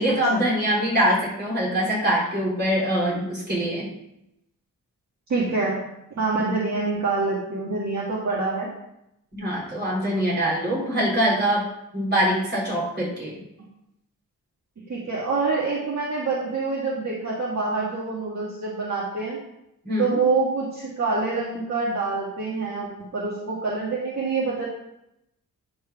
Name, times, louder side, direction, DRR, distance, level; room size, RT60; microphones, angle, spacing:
voice 1, 0.0-3.9 9.4-11.6 11.9-13.3 19.8-20.2, equal, 30° right, -6 dB, 3.9 m, -23 dB
voice 2, 5.3-5.8 6.2-8.7 10.1-10.3 14.8-19.4 20.0-24.7, right 3 dB, 55° right, -5 dB, 1.7 m, -26 dB
9.9 x 4.8 x 5.7 m, 0.83 s
wide cardioid pair, 160°, 33 cm